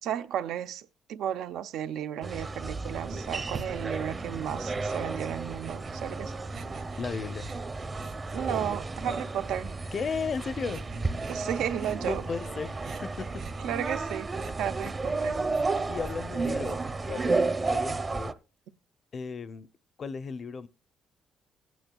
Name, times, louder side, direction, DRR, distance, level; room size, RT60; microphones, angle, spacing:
voice 1, 0.0-6.3 8.3-9.8 11.3-12.2 13.6-14.3 14.6-15.4, right 10 dB, 85° right, 0.6 m, -33 dB
sound 1, 2.2-18.3, right 3 dB, 30° right, 0.7 m, -33 dB
sound 2, 3.5-17.3, right 5 dB, 65° right, 1.6 m, -48 dB
voice 2, 7.0-7.5 9.9-10.8 12.0-13.4 15.7-16.8 17.0-18.4 19.1-19.7 20.0-20.7, left 5 dB, 45° left, 0.6 m, -35 dB
19.0 x 9.3 x 2.3 m
cardioid pair, 90°, 0 cm